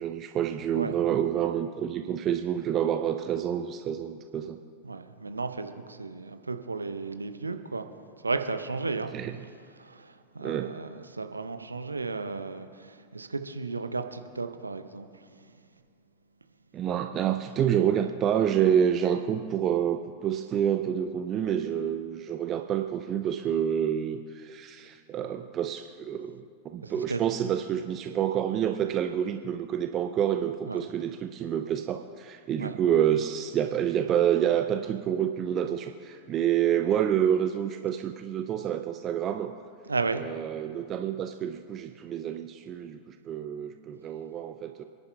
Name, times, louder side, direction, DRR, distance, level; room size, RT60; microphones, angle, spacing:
voice 1, 0.0-4.6 9.1-9.4 10.4-10.8 16.7-39.5 40.1-44.8, right 9 dB, 30° right, 7 dB, 0.5 m, -28 dB
voice 2, 4.8-7.9 8.2-9.1 9.8-15.2 26.8-27.2 30.7-30.8 32.6-32.7 39.9-40.2, right 3 dB, 80° right, 8 dB, 0.7 m, -34 dB
28.5 x 11.0 x 2.3 m, 2.3 s
figure-of-eight pair, 90°, 0 cm